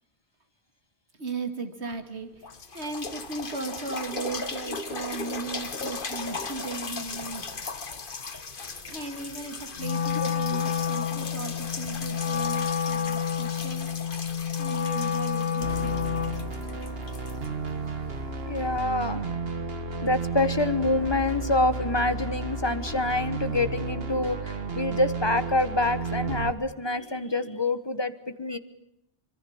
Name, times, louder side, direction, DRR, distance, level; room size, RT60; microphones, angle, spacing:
voice 1, 1.1-7.6 8.9-13.9 14.6-16.1, right 4 dB, 80° right, 7 dB, 2.7 m, -37 dB
sound 1, 1.9-2.0 2.4-18.2 18.8-18.9, left 4 dB, 50° left, 1.6 m, -37 dB
Wind instrument woodwind instrument, 9.8-16.5, left 8 dB, 85° left, 1.4 m, -29 dB
sound 2, 15.6-26.5, right 4 dB, 65° right, 1.9 m, -33 dB
voice 2, 18.5-19.2 20.0-28.1 28.4-28.6, left 2 dB, 25° left, 11 dB, 1.3 m, -26 dB
25.5 x 23.5 x 7.2 m, 0.82 s
omnidirectional pair, 1.1 m